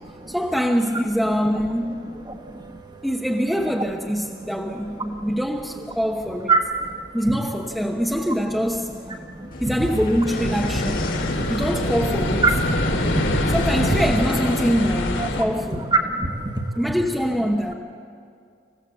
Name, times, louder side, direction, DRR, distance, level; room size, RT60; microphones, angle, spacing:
voice 1, 0.3-2.1 3.0-6.5 7.1-8.9 9.6-12.4 13.5-15.9 16.8-17.7, equal, ahead, -1 dB, 1.0 m, -24 dB
voice 2, 2.3-2.8 6.5-6.6 9.4-9.5 12.4-12.5 12.8-13.2 15.2-15.3 16.0-16.5, right 3 dB, 25° right, 4 dB, 1.5 m, -23 dB
sound 1, 9.5-14.6, left 1 dB, 50° left, 1.8 m, -34 dB
sound 2, 10.3-15.4, left 1 dB, 90° left, 2.7 m, -24 dB
27.0 x 15.5 x 7.8 m, 2.3 s
head